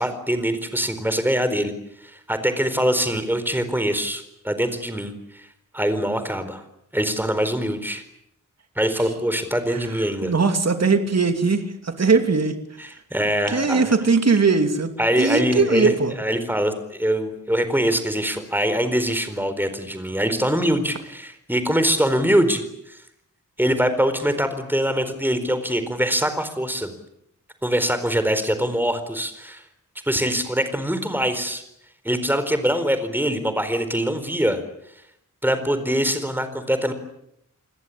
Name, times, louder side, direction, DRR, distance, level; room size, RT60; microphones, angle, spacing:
voice 1, 0.0-1.7 2.0-5.5 5.7-6.6 6.9-8.0 8.8-10.3 12.8-14.0 15.0-23.0 23.6-26.9 27.6-29.6 30.1-31.6 32.0-34.6 35.4-36.9, equal, 5° right, 10 dB, 4.3 m, -23 dB
voice 2, 10.2-12.6 13.5-14.9 15.2-16.1, right 4 dB, 50° right, 7 dB, 2.9 m, -20 dB
30.0 x 21.0 x 8.6 m, 0.76 s
wide cardioid pair, 125°, 33 cm